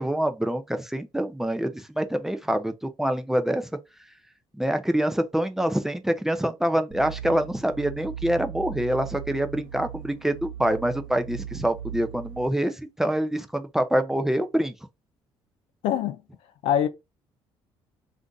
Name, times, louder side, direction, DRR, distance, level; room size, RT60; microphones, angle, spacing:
voice 1, 0.0-3.7 4.6-14.7, right 1 dB, 5° right, 0.4 m, -26 dB
sound 1, 6.9-12.5, right 9 dB, 80° right, 0.6 m, -38 dB
voice 2, 15.8-16.2 16.6-16.9, left 10 dB, 80° left, 0.6 m, -23 dB
2.5 x 2.4 x 3.7 m
cardioid pair, 145°, 9 cm